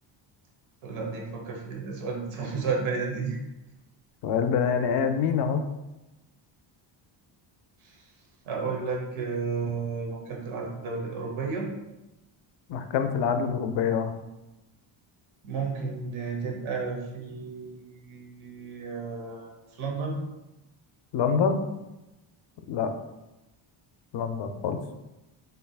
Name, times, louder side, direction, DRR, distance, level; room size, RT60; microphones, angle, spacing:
voice 1, 0.8-3.4 7.8-8.0 8.4-11.7 15.4-20.2, right 4 dB, 80° right, -1 dB, 1.0 m, -32 dB
voice 2, 4.2-5.6 12.7-14.1 21.1-21.6 22.7-22.9 24.1-24.8, left 6 dB, 60° left, 7 dB, 0.5 m, -25 dB
3.9 x 3.3 x 2.3 m, 1.0 s
cardioid pair, 125°, 48 cm